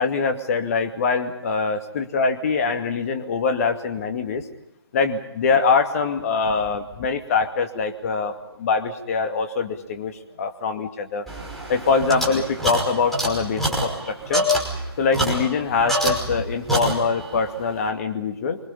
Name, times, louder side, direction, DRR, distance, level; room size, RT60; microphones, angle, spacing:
voice 1, 0.0-4.4 4.9-11.3 11.7-14.4 15.0-18.6, left 5 dB, 35° left, 5 dB, 2.4 m, -23 dB
sound 1, 11.3-16.4 16.7-17.4, equal, ahead, 5.4 m, -25 dB
27.0 x 25.0 x 5.6 m, 0.86 s
figure-of-eight pair, 145°, 14 cm